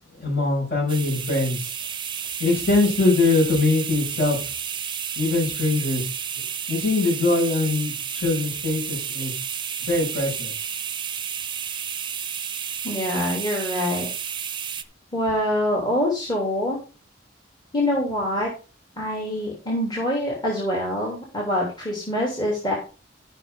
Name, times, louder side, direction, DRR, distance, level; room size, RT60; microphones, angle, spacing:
voice 1, 0.1-1.7 2.4-4.4 5.2-6.1 6.7-9.4 9.8-10.7, left 3 dB, 50° left, -1 dB, 6.5 m, -22 dB
sound 1, 0.9-14.8, right 8 dB, 25° right, 0.8 m, -31 dB
voice 2, 12.8-14.1 15.1-16.8 17.7-18.5 19.0-22.7, left 1 dB, 25° left, -3 dB, 3.1 m, -25 dB
14.5 x 6.2 x 3.8 m, 0.34 s
head